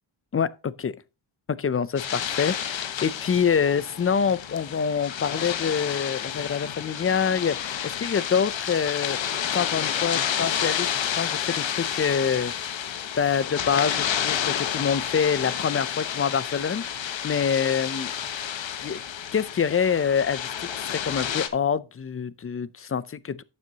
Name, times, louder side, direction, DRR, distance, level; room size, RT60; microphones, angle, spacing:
voice 1, 0.3-1.0 1.5-9.2 9.5-12.5 13.2-18.1 18.8-19.0 19.3-20.5 20.7-23.4, left 7 dB, 30° left, 0.4 m, -26 dB
sound 1, 2.0-21.5, left 9 dB, 65° left, 1.2 m, -30 dB
11.5 x 7.5 x 2.8 m
wide cardioid pair, 120°, 49 cm